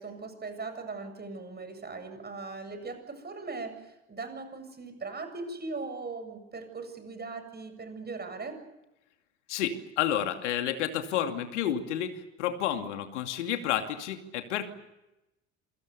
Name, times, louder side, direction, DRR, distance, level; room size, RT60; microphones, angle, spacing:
voice 1, 0.0-8.6, right 3 dB, 25° right, 8 dB, 7.8 m, -39 dB
voice 2, 9.5-14.7, left 10 dB, 75° left, 6 dB, 2.7 m, -30 dB
28.0 x 24.0 x 6.9 m, 0.93 s
hypercardioid pair, 60°, 36 cm